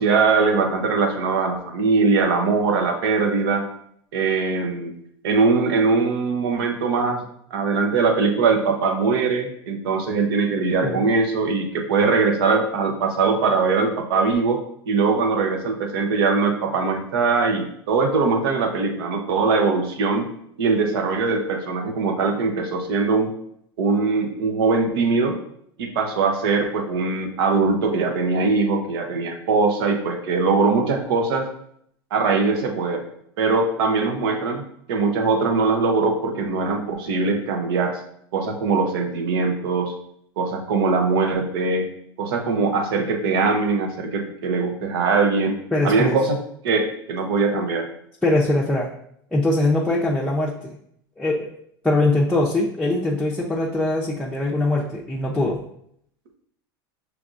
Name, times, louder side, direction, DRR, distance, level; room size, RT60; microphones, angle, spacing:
voice 1, 0.0-3.7 4.1-4.9 5.2-7.2 7.5-14.6 14.9-20.3 20.6-23.3 23.8-25.4 25.8-31.5 32.1-33.0 33.4-38.0 38.3-39.9 40.4-41.9 42.2-45.6 45.8-46.4 46.6-47.9, right 4 dB, 75° right, 4 dB, 0.8 m, -21 dB
voice 2, 45.7-46.2 48.2-48.9 49.3-50.7 51.2-51.5 51.8-55.6, left 2 dB, 5° left, -5 dB, 0.6 m, -22 dB
5.9 x 3.3 x 2.5 m, 0.70 s
hypercardioid pair, 105°, 13 cm